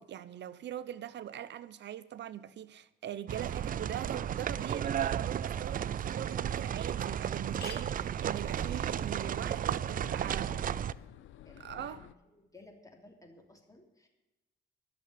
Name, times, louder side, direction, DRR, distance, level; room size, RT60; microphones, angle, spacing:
voice 1, 0.0-10.5 11.6-12.1, right 11 dB, 65° right, 0.8 m, -42 dB
sound 1, 3.3-12.1, left 12 dB, 80° left, 0.6 m, -55 dB
sound 2, 3.3-10.9, right 9 dB, 45° right, 0.4 m, -33 dB
sound 3, 6.0-6.1 6.6-6.7 6.9-7.0 7.3-11.1, left 5 dB, 55° left, 2.7 m, -54 dB
voice 2, 10.0-11.0 11.4-12.1 12.3-14.1, left 2 dB, 15° left, 3.0 m, -56 dB
11.5 x 7.0 x 9.5 m
cardioid pair, 90°, 20 cm